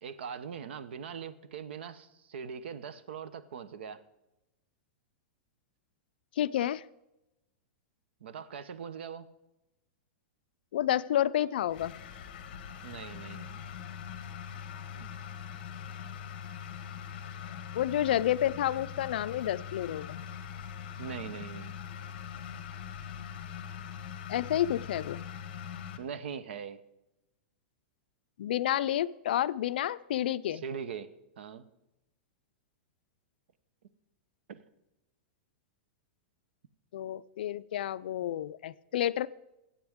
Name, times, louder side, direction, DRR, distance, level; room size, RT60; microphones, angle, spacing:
voice 1, 0.0-4.0 8.2-9.3 12.8-13.6 14.9-15.1 21.0-21.8 26.0-26.8 30.5-31.7 34.5-34.6, right 7 dB, 75° right, 14 dB, 0.8 m, -41 dB
voice 2, 6.4-6.8 10.7-11.9 17.7-20.2 24.3-25.2 28.4-30.6 36.9-39.3, left 12 dB, 60° left, 16 dB, 0.4 m, -30 dB
sound 1, 11.7-26.0, left 8 dB, 40° left, 1.1 m, -42 dB
22.0 x 8.6 x 3.6 m, 0.94 s
supercardioid pair, 180°, 6 cm